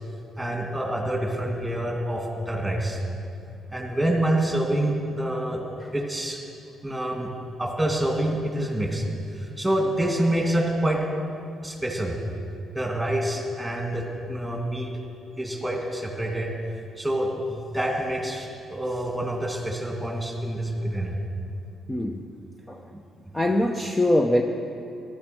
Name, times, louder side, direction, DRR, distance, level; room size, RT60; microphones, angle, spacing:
voice 1, 0.4-3.0 3.7-5.6 5.9-6.4 6.8-7.3 7.6-9.1 9.3-11.1 11.6-12.2 12.7-14.9 15.4-16.5 17.0-21.1, right 1 dB, 5° right, 1 dB, 2.5 m, -27 dB
voice 2, 21.9-22.2 22.7-22.8 23.3-24.4, left 1 dB, 15° left, 3 dB, 0.8 m, -23 dB
14.0 x 12.0 x 6.1 m, 2.6 s
cardioid pair, 90°, 0 cm